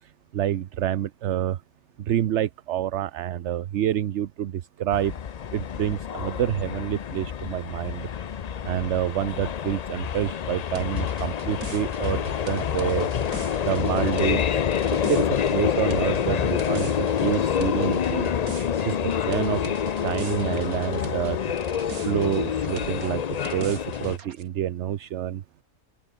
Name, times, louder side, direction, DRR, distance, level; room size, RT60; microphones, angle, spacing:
voice 1, 0.3-1.6 2.1-4.5 4.8-5.1 5.5-8.1 8.6-13.1 13.6-14.4 14.9-18.3 18.9-19.6 20.0-21.4 22.0-25.4, right 11 dB, 60° right, 0.9 m, -27 dB
sound 1, 4.9-24.2, left 8 dB, 85° left, 0.3 m, -27 dB
sound 2, 10.7-21.3 21.6-24.4, right 6 dB, 80° right, 2.4 m, -42 dB
open air
omnidirectional pair, 1.5 m